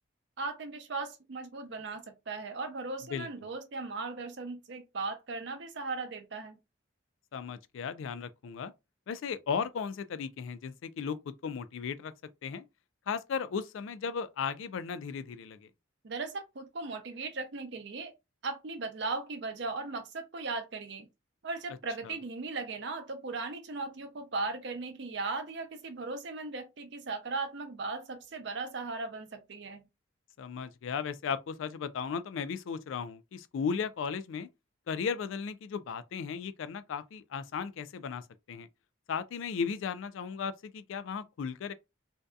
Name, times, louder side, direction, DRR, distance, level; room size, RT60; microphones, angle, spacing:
voice 1, 0.4-6.6 16.0-18.1 18.4-21.1 21.4-29.8, right 3 dB, 55° right, 0.5 m, -37 dB
voice 2, 7.3-8.7 9.1-12.1 12.4-12.7 13.1-15.7 22.0-22.1 30.4-34.5 34.9-38.7 39.1-41.7, left 6 dB, 70° left, 0.3 m, -36 dB
2.6 x 2.2 x 2.3 m
head